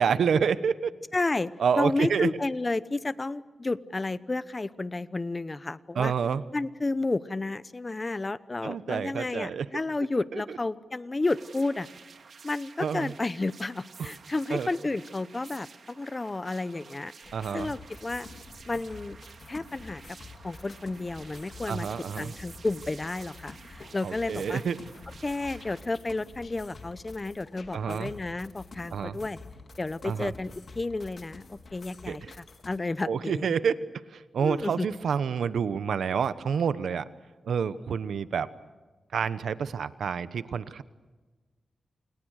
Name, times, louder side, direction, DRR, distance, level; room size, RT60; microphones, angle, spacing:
voice 1, 0.0-0.9 1.6-2.3 5.9-6.4 8.6-9.7 10.1-10.6 12.8-13.1 14.5-14.7 17.3-17.7 21.7-22.3 24.0-24.7 27.7-28.1 28.9-29.2 30.0-30.3 32.1-32.3 33.1-33.8 34.1-37.1 37.4-38.5 39.1-40.8, right 6 dB, 85° right, 14 dB, 1.1 m, -28 dB
voice 2, 1.1-6.1 6.5-11.9 12.4-17.1 17.5-18.3 18.7-19.2 19.5-20.2 20.4-21.9 22.2-24.6 25.2-29.4 29.8-31.4 31.7-33.5 34.4-34.9, left 2 dB, 30° left, 16 dB, 0.9 m, -31 dB
sound 1, 11.2-25.8, right 5 dB, 65° right, 2.5 m, -51 dB
sound 2, 17.2-32.8, left 3 dB, 55° left, 3.8 m, -48 dB
29.0 x 27.5 x 6.5 m, 1.3 s
wide cardioid pair, 90°, 0 cm